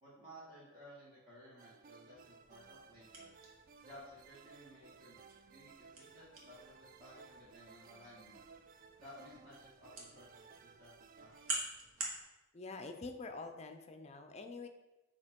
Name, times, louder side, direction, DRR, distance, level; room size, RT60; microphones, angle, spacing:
voice 1, 0.0-3.3 3.8-5.2 5.5-8.4 9.0-11.6, equal, 20° right, -10 dB, 1.9 m, -57 dB
sound 1, 1.6-11.7, right 5 dB, 40° right, 0.3 m, -59 dB
sound 2, 2.4-12.2, right 2 dB, 85° right, 1.4 m, -48 dB
voice 2, 12.5-14.7, left 3 dB, 30° left, 6 dB, 0.5 m, -46 dB
6.8 x 2.9 x 5.2 m, 1.0 s
head